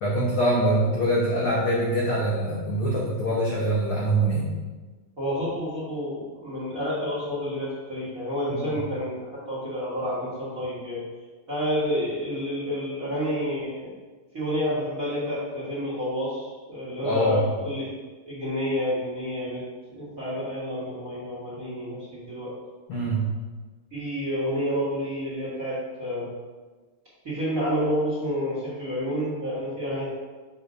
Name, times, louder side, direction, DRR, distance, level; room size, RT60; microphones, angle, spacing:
voice 1, 0.0-4.5 8.5-8.7 17.0-17.4 22.9-23.2, right 1 dB, 70° left, -5 dB, 1.2 m, -24 dB
voice 2, 5.2-11.0 11.5-13.9 14.3-19.6 19.9-22.5 23.9-26.3 27.2-30.1, equal, 40° right, -8 dB, 1.3 m, -29 dB
6.6 x 3.5 x 5.3 m, 1.3 s
omnidirectional pair, 3.6 m